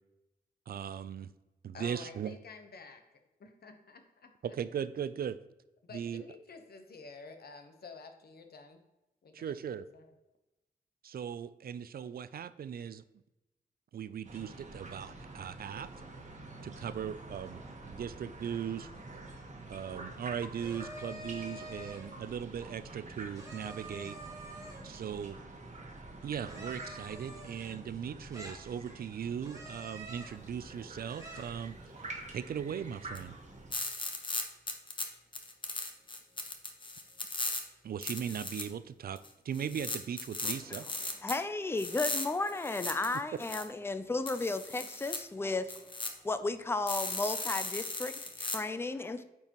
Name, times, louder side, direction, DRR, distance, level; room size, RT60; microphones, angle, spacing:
voice 1, 0.7-1.3 1.6-2.3 4.4-5.4 5.9-6.2 9.3-9.8 11.0-13.0 13.9-15.9 16.6-18.9 19.7-24.2 24.8-25.4 26.2-31.8 32.3-33.4 37.8-39.2 39.5-40.9, right 8 dB, 70° right, 15 dB, 0.4 m, -38 dB
voice 2, 1.7-3.0 3.4-4.6 5.8-8.8 9.2-10.1, left 4 dB, 75° left, 6 dB, 0.9 m, -50 dB
sound 1, 14.2-33.7, right 2 dB, 45° right, 1.3 m, -48 dB
sound 2, 20.6-22.2 23.3-25.0 26.5-28.0 28.3-29.1 29.4-30.5 31.1-31.6, right 1 dB, 20° right, 1.5 m, -47 dB
sound 3, 33.1-33.2 33.7-35.0 35.3-37.6 38.0-38.6 39.2-39.3 39.5-41.4 41.8-43.6 44.3-45.2 45.7-46.1 46.9-48.6, left 2 dB, 30° left, 1.0 m, -37 dB
voice 3, 40.4-40.8 41.2-45.7 46.2-49.2, left 3 dB, 15° left, 11 dB, 0.4 m, -34 dB
8.5 x 4.6 x 3.0 m, 0.99 s
wide cardioid pair, 100°, 16 cm